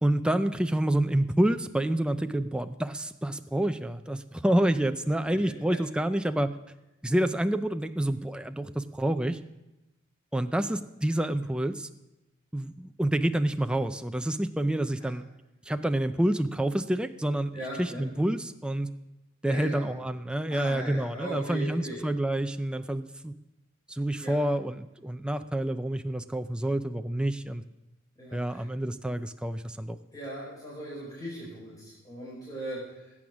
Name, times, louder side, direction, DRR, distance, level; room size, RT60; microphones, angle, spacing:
voice 1, 0.0-6.5 7.0-9.4 10.3-11.9 12.5-15.2 15.7-18.9 19.4-23.3 23.9-27.6 28.3-30.0, right 1 dB, 5° right, 8 dB, 0.5 m, -28 dB
voice 2, 17.5-18.0 19.5-19.9 20.5-22.0 24.2-24.4 28.2-28.6 30.1-33.1, right 1 dB, 20° left, -7 dB, 5.1 m, -39 dB
20.0 x 8.7 x 6.1 m, 0.98 s
head